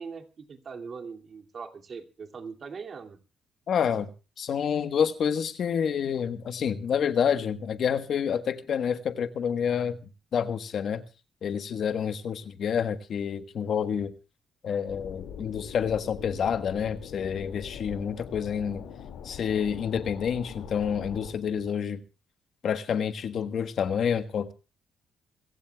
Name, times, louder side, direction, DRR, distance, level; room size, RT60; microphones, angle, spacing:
voice 1, 0.0-3.2, right 5 dB, 45° right, 2.4 m, -41 dB
voice 2, 3.7-4.1 4.4-10.0 10.3-11.0 11.4-14.1 14.6-18.8 19.2-22.0 22.6-24.5, left 7 dB, 60° left, 1.3 m, -28 dB
sound 1, 14.9-21.3, left 8 dB, 85° left, 2.2 m, -42 dB
26.5 x 15.5 x 2.3 m
cardioid pair, 90°, 0 cm